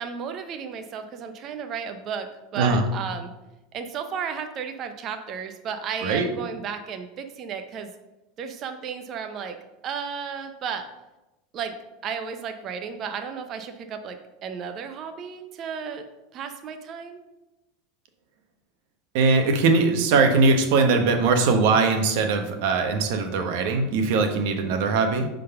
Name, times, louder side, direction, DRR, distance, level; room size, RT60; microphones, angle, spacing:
voice 1, 0.0-2.3 2.5-3.3 3.7-7.9 8.4-9.6 9.8-10.9 11.5-11.7 12.0-16.1 16.3-17.2, right 6 dB, 40° right, 7 dB, 0.6 m, -33 dB
voice 2, 19.1-25.3, right 4 dB, 70° right, 5 dB, 1.0 m, -21 dB
5.0 x 3.9 x 5.7 m, 0.98 s
supercardioid pair, 120°, 0 cm